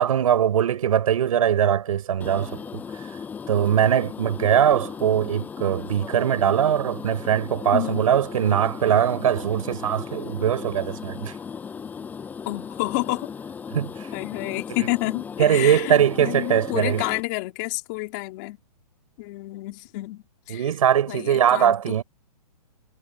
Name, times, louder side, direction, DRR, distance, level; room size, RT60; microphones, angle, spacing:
voice 1, 0.0-2.6 3.5-11.4 13.7-14.1 15.4-17.0 20.5-22.0, right 9 dB, 55° right, 5.2 m, -21 dB
sound 1, 2.2-17.2, left 6 dB, 10° left, 6.9 m, -37 dB
voice 2, 7.7-8.1 12.4-13.3 14.1-18.6 19.2-20.7 21.1-22.0, left 22 dB, 25° left, 3.3 m, -30 dB
hypercardioid pair, 170°, 21 cm